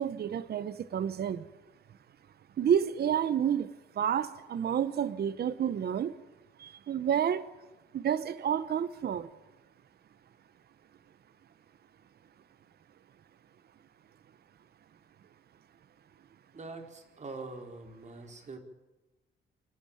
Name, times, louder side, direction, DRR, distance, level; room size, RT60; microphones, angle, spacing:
voice 1, 0.0-1.5 2.6-3.7 4.0-6.1 6.6-7.4 7.9-9.3, right 8 dB, 55° right, 15 dB, 1.0 m, -29 dB
voice 2, 16.5-18.6, right 3 dB, 35° right, 4 dB, 4.4 m, -44 dB
28.5 x 12.0 x 9.0 m, 1.1 s
cardioid pair, 90°, 20 cm